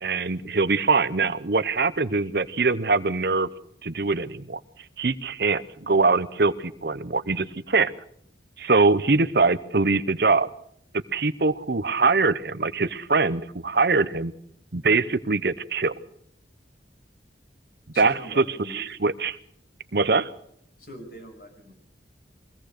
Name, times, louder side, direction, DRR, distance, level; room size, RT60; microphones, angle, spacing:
voice 1, 0.0-3.5 3.8-4.6 5.0-7.9 8.6-10.5 11.1-14.3 14.7-15.9 18.0-19.4 19.9-20.3, right 3 dB, 55° right, 14 dB, 0.8 m, -23 dB
voice 2, 17.9-18.8 20.8-21.7, equal, 50° left, 4 dB, 6.0 m, -42 dB
23.0 x 17.5 x 6.6 m, 0.69 s
head